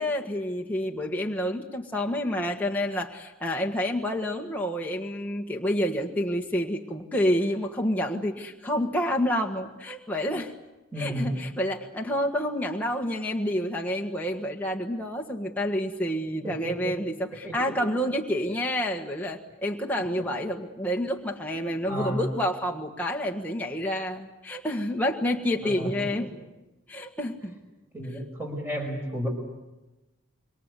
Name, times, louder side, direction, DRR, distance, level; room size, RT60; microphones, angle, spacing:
voice 1, 0.0-10.5 11.0-26.3 26.9-27.5, equal, 5° left, 0 dB, 1.7 m, -28 dB
voice 2, 10.9-11.4 16.4-16.9 17.4-17.8 21.5-22.3 25.6-26.3 27.9-29.3, equal, 10° right, 1 dB, 5.5 m, -33 dB
27.0 x 23.5 x 8.4 m, 1.1 s
head